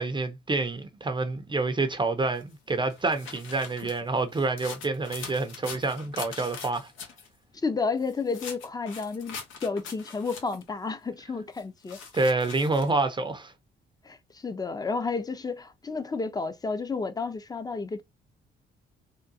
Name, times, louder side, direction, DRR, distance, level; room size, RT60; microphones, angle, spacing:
voice 1, 0.0-6.9 12.1-13.5, right 3 dB, 25° right, 0.6 m, -28 dB
sound 1, 2.4-7.3 8.0-10.7 11.6-12.9, left 6 dB, 85° left, 1.0 m, -42 dB
voice 2, 7.6-12.0 14.0-18.0, left 4 dB, 20° left, 0.6 m, -31 dB
3.6 x 2.2 x 2.7 m
cardioid pair, 90°, 20 cm